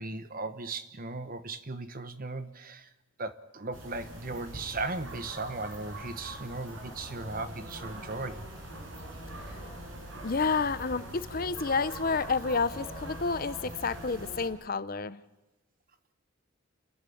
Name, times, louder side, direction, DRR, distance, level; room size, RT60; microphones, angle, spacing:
voice 1, 0.0-2.9 3.2-8.5, right 3 dB, 40° right, 12 dB, 1.2 m, -37 dB
sound 1, 3.7-14.5, right 1 dB, 60° right, 5.6 m, -43 dB
voice 2, 10.2-15.2, left 4 dB, 40° left, 15 dB, 0.7 m, -30 dB
29.5 x 11.5 x 8.6 m, 1.1 s
head